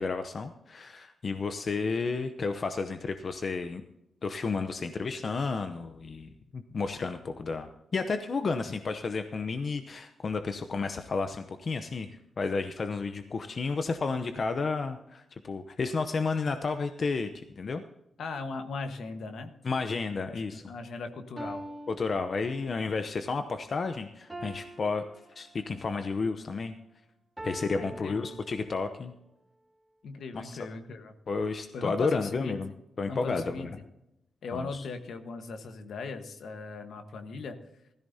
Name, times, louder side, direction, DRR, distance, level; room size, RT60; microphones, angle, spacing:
voice 1, 0.0-3.8 4.2-17.8 19.6-20.7 21.9-25.0 25.3-26.8 27.4-29.1 30.3-30.6 31.3-32.7 33.0-33.7 34.5-34.9, left 4 dB, 50° left, 8 dB, 0.7 m, -32 dB
voice 2, 18.2-19.5 20.3-21.6 27.8-28.3 30.0-31.1 31.7-32.6 33.1-33.7 34.4-37.6, left 4 dB, 75° left, 7 dB, 1.3 m, -38 dB
sound 1, 20.6-20.7 21.4-23.0 24.3-25.9 27.4-29.0, right 1 dB, 10° right, 2.9 m, -44 dB
16.0 x 14.0 x 2.8 m, 0.86 s
cardioid pair, 80°, 0 cm